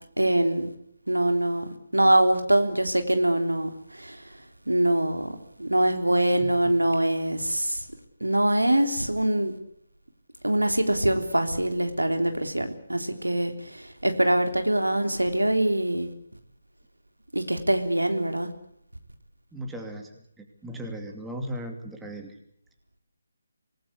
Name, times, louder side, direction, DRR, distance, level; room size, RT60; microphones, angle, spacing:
voice 1, 0.2-0.7 1.1-4.2 4.7-5.3 5.6-7.8 8.2-9.5 10.4-16.1 17.3-18.5, right 1 dB, 85° right, 6 dB, 3.4 m, -24 dB
voice 2, 6.4-6.8 19.5-20.1 20.4-22.4, equal, 5° right, 3 dB, 2.5 m, -37 dB
26.0 x 19.5 x 8.4 m, 0.74 s
figure-of-eight pair, 150°, 0 cm